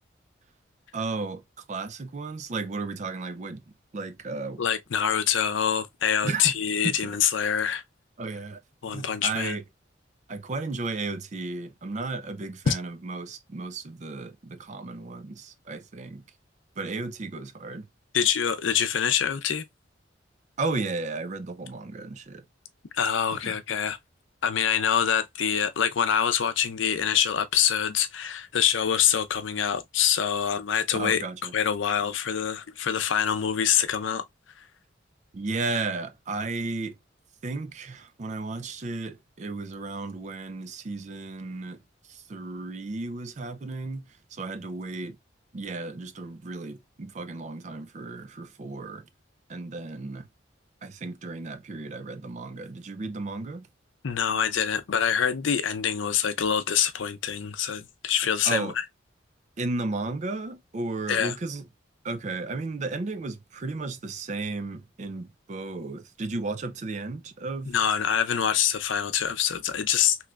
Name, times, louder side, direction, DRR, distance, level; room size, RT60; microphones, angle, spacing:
voice 1, 0.9-1.4 1.7-4.6 6.2-6.6 6.8-7.0 8.2-8.6 8.9-9.6 10.3-16.3 16.8-17.9 20.6-22.5 23.3-23.6 30.9-31.5 35.3-37.0 37.4-41.8 42.1-45.2 45.5-49.1 49.5-50.3 50.8-53.7 58.4-58.7 59.6-61.7 62.0-67.7, right 3 dB, 40° right, 0.4 m, -34 dB
voice 2, 4.6-7.8 8.8-9.6 12.7-12.8 18.1-19.7 22.9-24.0 24.4-31.2 31.5-34.2 34.6-34.7 54.0-58.7 61.1-61.3 67.7-70.2, left 8 dB, 85° left, 0.5 m, -25 dB
3.2 x 3.0 x 2.3 m
head